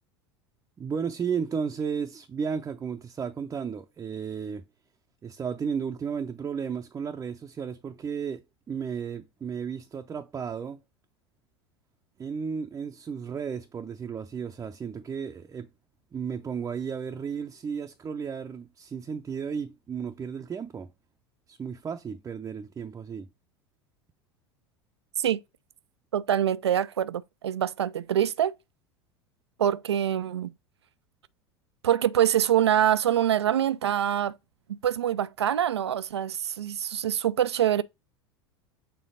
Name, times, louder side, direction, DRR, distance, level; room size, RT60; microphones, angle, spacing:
voice 1, 0.8-4.6 5.2-10.8 12.2-15.7 16.1-20.9 21.5-23.3, right 6 dB, 20° right, 0.6 m, -34 dB
voice 2, 26.1-28.5 29.6-30.5 31.8-34.4 34.7-37.8, right 10 dB, 75° right, 0.4 m, -25 dB
6.9 x 3.7 x 3.7 m
figure-of-eight pair, 75°, 14 cm